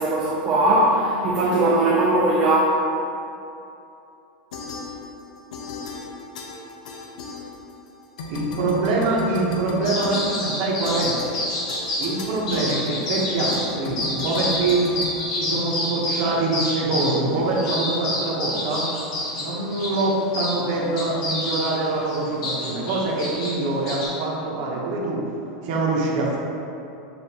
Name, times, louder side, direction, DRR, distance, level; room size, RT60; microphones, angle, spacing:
voice 1, 0.0-2.8, right 2 dB, 30° right, -5 dB, 0.5 m, -19 dB
sound 1, 4.5-5.3 5.5-7.9 8.2-16.0, left 3 dB, 85° left, 0.6 m, -35 dB
voice 2, 8.3-11.2 12.0-14.8 15.3-18.9 19.4-25.2 25.6-26.4, right 2 dB, 50° right, -4 dB, 0.9 m, -24 dB
sound 2, 9.8-12.1 12.5-13.7 14.0-20.6 21.0-24.1, left 1 dB, 60° left, 1.5 m, -28 dB
6.8 x 2.5 x 2.8 m, 2.7 s
supercardioid pair, 160°, 4 cm